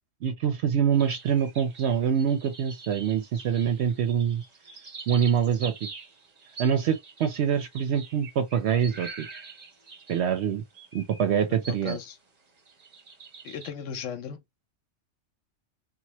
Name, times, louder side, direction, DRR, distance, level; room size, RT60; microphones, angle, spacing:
voice 1, 0.2-4.4 5.1-5.9 6.6-9.3 10.1-10.6 10.9-12.0, right 8 dB, 70° right, 0.8 m, -25 dB
sound 1, 0.9-12.1 12.5-13.7, right 4 dB, 40° right, 0.8 m, -45 dB
voice 2, 11.5-12.1 13.4-14.4, left 7 dB, 80° left, 1.0 m, -36 dB
2.9 x 2.1 x 2.9 m
omnidirectional pair, 1.3 m